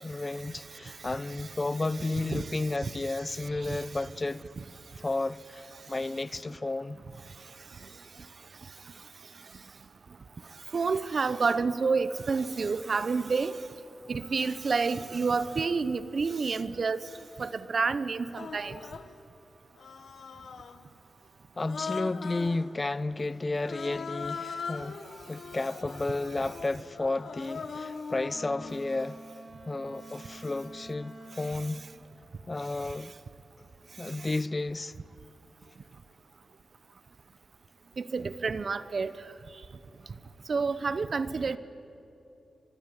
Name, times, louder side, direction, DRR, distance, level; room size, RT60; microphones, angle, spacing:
voice 1, 0.0-4.4 5.0-7.0 21.6-25.0 25.3-29.2 29.7-31.8 32.5-33.1 34.0-34.9, left 2 dB, 35° left, 0.7 m, -32 dB
voice 2, 2.3-3.8 4.6-4.7 10.7-13.6 14.1-17.1 17.4-18.8 34.2-34.3 38.0-39.1 40.5-41.6, right 4 dB, 60° right, 1.0 m, -29 dB
Human voice, 17.1-17.3 18.3-19.1 19.8-20.8 21.6-22.7 23.6-28.8, left 5 dB, 75° left, 1.2 m, -40 dB
Wind instrument woodwind instrument, 28.2-31.7, right 2 dB, 85° right, 6.7 m, -48 dB
23.5 x 22.0 x 9.9 m
cardioid pair, 60°, 0 cm